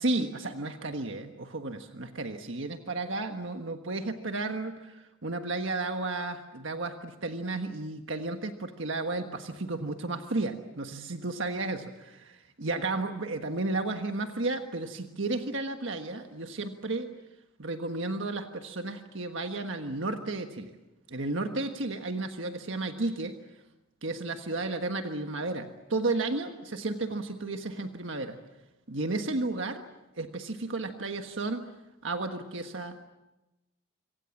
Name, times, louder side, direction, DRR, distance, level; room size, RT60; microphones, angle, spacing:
voice 1, 0.0-17.1 17.6-20.7 21.1-23.4 24.0-28.4 28.9-29.8 30.2-31.6 32.0-33.1, right 2 dB, 65° right, 5 dB, 1.5 m, -33 dB
26.5 x 25.5 x 7.3 m, 0.99 s
head